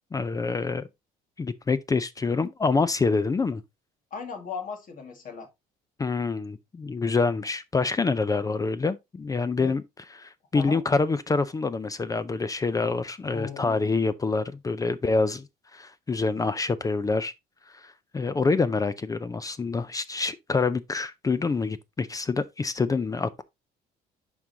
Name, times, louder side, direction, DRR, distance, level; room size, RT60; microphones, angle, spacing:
voice 1, 0.1-0.9 1.4-3.6 6.0-9.8 10.2-15.5 15.7-17.3 17.8-23.4, left 4 dB, 20° left, 0.4 m, -26 dB
voice 2, 4.1-5.5 9.6-9.8 10.5-10.8 13.3-13.8, left 5 dB, 50° left, 2.0 m, -37 dB
11.0 x 3.8 x 2.7 m
cardioid pair, 110°, 17 cm